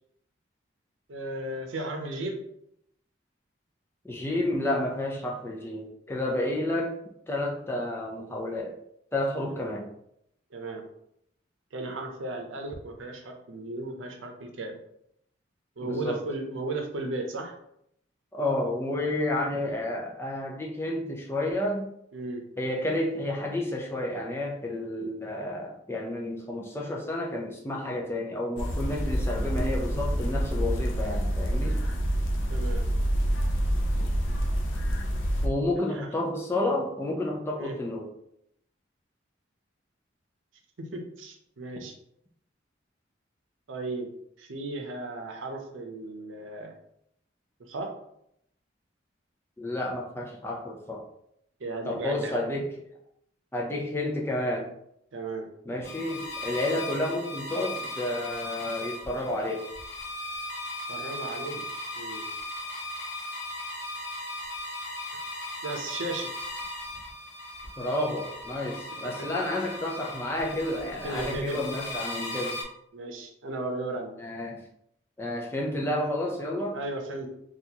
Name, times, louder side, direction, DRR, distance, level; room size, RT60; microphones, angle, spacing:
voice 1, 1.1-2.4 9.5-9.7 10.5-10.8 11.7-14.7 15.8-17.5 22.1-22.4 32.5-32.9 35.9-36.1 37.6-37.8 40.8-41.9 43.7-44.1 44.4-46.7 47.6-47.9 51.6-52.4 55.1-55.5 60.9-61.7 61.9-62.3 65.6-66.3 69.2-69.3 71.0-71.6 72.9-74.1 76.7-77.3, right 2 dB, 90° right, 3 dB, 0.7 m, -35 dB
voice 2, 4.0-7.0 7.3-8.8 9.1-9.9 15.8-16.2 18.3-21.9 22.6-31.8 35.4-38.1 49.6-51.0 51.9-52.7 53.5-54.7 55.7-59.7 67.8-72.6 74.2-74.6 75.2-76.8, left 1 dB, 10° left, -1 dB, 0.4 m, -30 dB
sound 1, 28.6-35.5, equal, 80° left, 0.5 m, -27 dB
sound 2, 55.8-72.6, left 1 dB, 65° left, 0.9 m, -37 dB
4.1 x 2.4 x 2.8 m, 0.76 s
head